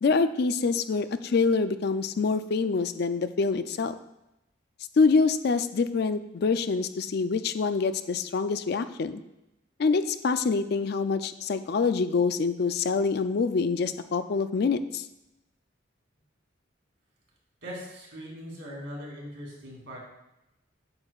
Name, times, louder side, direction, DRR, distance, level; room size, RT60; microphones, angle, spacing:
voice 1, 0.0-3.9 5.0-9.2 9.8-15.0, left 4 dB, 55° left, 11 dB, 0.4 m, -25 dB
voice 2, 17.6-20.0, equal, 65° right, -3 dB, 2.7 m, -40 dB
8.6 x 7.8 x 2.4 m, 0.91 s
head